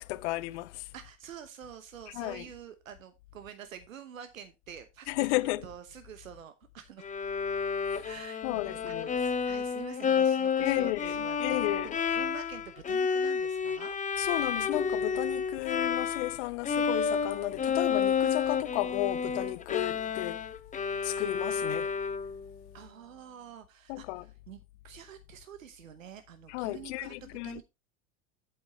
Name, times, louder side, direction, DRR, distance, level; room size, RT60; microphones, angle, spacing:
voice 1, 0.0-0.9 2.1-2.4 5.1-5.6 7.9-8.0 8.4-9.1 10.6-11.9 14.2-20.4 21.0-21.9 23.9-24.2 26.5-27.6, left 19 dB, 60° left, 0.6 m, -33 dB
voice 2, 0.9-5.1 5.6-7.1 8.0-11.4 12.1-13.9 22.7-24.6 24.8-27.6, right 9 dB, 80° right, 1.0 m, -47 dB
Bowed string instrument, 7.0-16.4 16.6-22.5, left 6 dB, 20° left, 0.8 m, -30 dB
8.5 x 8.2 x 3.0 m
hypercardioid pair, 80°, 39 cm